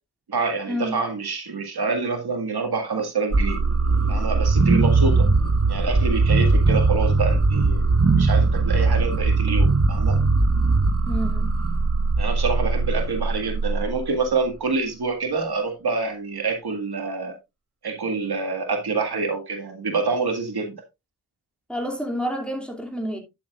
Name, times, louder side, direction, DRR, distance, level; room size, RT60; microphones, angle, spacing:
voice 1, 0.3-3.6 4.1-5.3 5.7-7.9 8.1-10.2 12.2-17.3 17.8-20.7, right 4 dB, 80° right, 1.9 m, -26 dB
sound 1, 3.3-14.2, right 3 dB, 40° right, 1.1 m, -20 dB
voice 2, 11.1-11.5 21.7-23.2, equal, 5° left, 2.5 m, -29 dB
11.0 x 7.1 x 2.4 m
wide cardioid pair, 70°, 38 cm